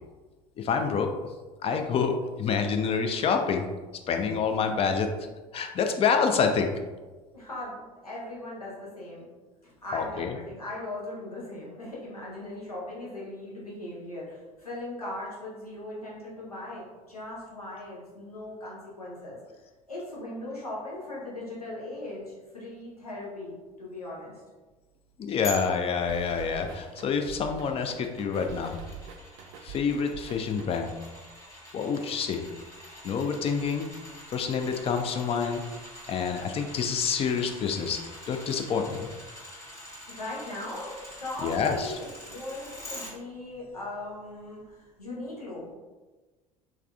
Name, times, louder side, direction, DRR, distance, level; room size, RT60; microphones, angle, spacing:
voice 1, 0.6-1.1 1.6-3.7 4.1-5.1 5.5-6.7 9.9-10.3 25.2-28.8 29.6-30.9 31.7-32.4 33.0-33.9 34.3-35.6 36.1-38.0 38.3-39.1 41.4-41.9, left 6 dB, 30° left, 5 dB, 0.4 m, -27 dB
voice 2, 7.3-9.3 9.6-19.4 19.9-24.4 40.1-45.7, left 1 dB, 90° left, -6 dB, 0.8 m, -39 dB
sound 1, 25.4-43.1 43.5-43.6, left 1 dB, 15° left, 1.1 m, -45 dB
sound 2, 26.1-31.0, right 7 dB, 60° right, 0.4 m, -45 dB
3.5 x 3.1 x 2.3 m, 1.3 s
figure-of-eight pair, 60°, 19 cm